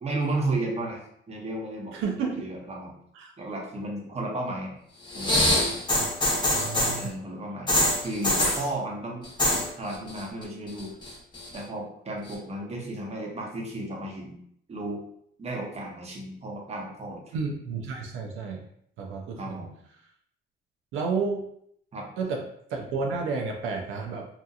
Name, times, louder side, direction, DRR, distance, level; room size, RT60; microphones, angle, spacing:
voice 1, 0.0-1.0 1.3-2.0 2.4-2.9 3.4-4.8 5.1-5.8 7.0-9.3 9.5-11.0 11.5-14.4 14.7-15.0 15.4-17.3 19.4-19.7 21.9-22.1, right 2 dB, 30° right, -1 dB, 0.7 m, -33 dB
voice 2, 1.9-2.4 3.1-3.3 5.9-6.1 6.5-7.1 17.3-18.7 19.0-19.6 20.9-21.5 22.2-24.3, right 4 dB, 85° right, 1 dB, 0.4 m, -31 dB
sound 1, 5.1-7.0 7.7-8.6 9.2-9.7 9.9-10.4 10.8-11.6 12.3-12.4, left 1 dB, 25° left, 0.8 m, -24 dB
2.7 x 2.4 x 2.3 m, 0.69 s
cardioid pair, 90°, 20 cm